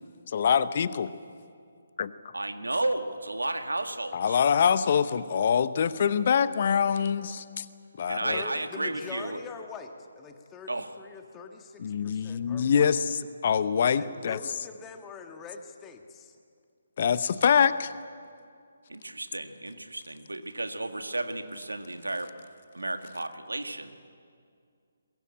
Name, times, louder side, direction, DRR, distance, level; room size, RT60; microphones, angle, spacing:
voice 1, 0.3-1.1 2.0-2.1 4.1-7.6 8.0-8.4 11.8-13.0 13.4-14.4 17.0-17.9, left 7 dB, 45° left, 15 dB, 0.8 m, -24 dB
voice 2, 2.3-4.4 8.1-9.4 10.7-10.9 18.9-22.3 22.7-23.9, right 2 dB, 80° right, 7 dB, 1.9 m, -33 dB
voice 3, 8.3-13.0 14.0-16.4, left 5 dB, 15° left, 5 dB, 1.7 m, -44 dB
22.0 x 21.5 x 8.7 m, 2.3 s
figure-of-eight pair, 145°, 0 cm